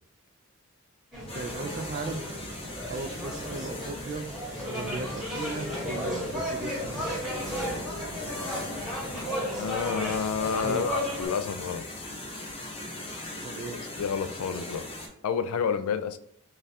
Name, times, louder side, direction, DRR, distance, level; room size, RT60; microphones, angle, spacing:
sound 1, 1.1-11.3, equal, ahead, 1.1 m, -34 dB
sound 2, 1.3-15.1, left 2 dB, 25° left, 0.7 m, -40 dB
voice 1, 1.3-2.2 2.9-4.2 4.6-7.1 10.6-10.9 13.4-13.8, right 3 dB, 40° right, 8 dB, 0.3 m, -36 dB
voice 2, 9.5-11.8 14.0-14.9 15.2-16.2, left 6 dB, 80° left, 11 dB, 0.3 m, -29 dB
3.2 x 2.4 x 4.1 m, 0.68 s
head